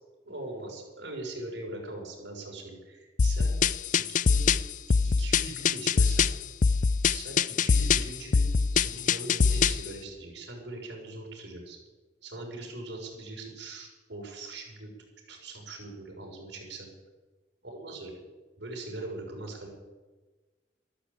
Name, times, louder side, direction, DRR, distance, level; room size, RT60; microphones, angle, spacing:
voice 1, 0.2-3.5 4.0-4.5 5.0-6.3 7.1-11.8 12.2-14.9 15.3-16.9 17.6-18.1 18.6-19.7, right 2 dB, 70° right, -1 dB, 5.7 m, -41 dB
sound 1, 3.2-9.9, left 5 dB, 40° left, 0.4 m, -24 dB
13.5 x 12.0 x 8.5 m, 1.3 s
head